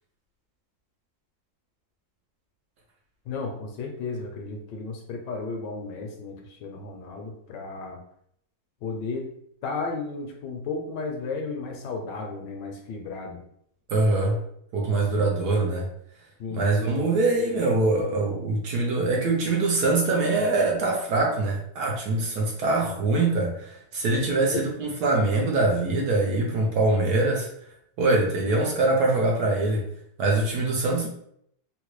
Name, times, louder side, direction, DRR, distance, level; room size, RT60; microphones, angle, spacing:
voice 1, 3.3-8.0 8.8-9.3 9.6-13.4 16.4-17.0, left 4 dB, 75° left, 2 dB, 1.2 m, -34 dB
voice 2, 13.9-14.4 14.7-15.9 16.5-27.5 28.0-29.8 30.2-31.1, right 2 dB, 70° right, -1 dB, 1.1 m, -23 dB
3.7 x 2.1 x 3.0 m, 0.70 s
omnidirectional pair, 2.1 m